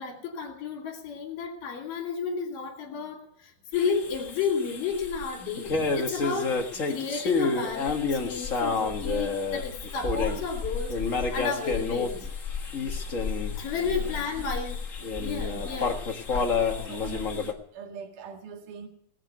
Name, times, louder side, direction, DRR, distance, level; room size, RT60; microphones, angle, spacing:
voice 1, 0.0-12.3 13.6-14.8 15.2-15.9, left 5 dB, 70° left, 0 dB, 4.1 m, -32 dB
sound 1, 3.7-17.5, left 4 dB, 50° left, 0.9 m, -30 dB
voice 2, 12.8-13.3 14.0-14.6 15.5-15.8 16.8-18.9, right 7 dB, 65° right, 3 dB, 3.4 m, -44 dB
18.5 x 8.7 x 8.0 m, 0.67 s
omnidirectional pair, 4.1 m